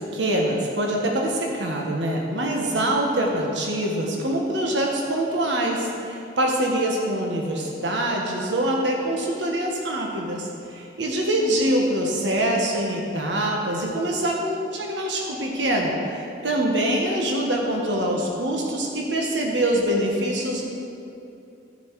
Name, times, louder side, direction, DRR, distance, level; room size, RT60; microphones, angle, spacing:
voice 1, 0.0-20.6, right 1 dB, 90° right, 0 dB, 1.4 m, -24 dB
15.0 x 7.1 x 4.7 m, 2.7 s
head